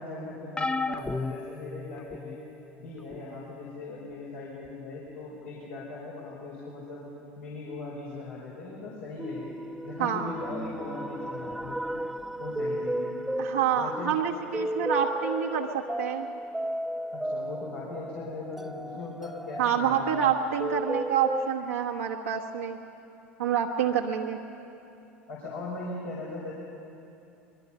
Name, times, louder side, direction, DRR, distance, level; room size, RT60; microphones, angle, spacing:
voice 1, 0.0-2.4 2.8-7.0 7.4-9.5 9.8-11.8 12.2-13.2 13.7-14.1 17.1-20.3 25.3-26.5, left 3 dB, 80° left, -6 dB, 4.9 m, -39 dB
sound 1, 0.6-2.4 3.1-3.4 4.7-4.8, left 3 dB, 15° left, 0.8 m, -33 dB
sound 2, 9.2-21.5, right 1 dB, 5° right, 0.4 m, -34 dB
voice 2, 10.0-10.3 13.4-16.3 19.6-22.8 23.4-24.4, right 8 dB, 85° right, -2 dB, 1.2 m, -27 dB
24.0 x 22.0 x 5.5 m, 2.8 s
hypercardioid pair, 75°, 7 cm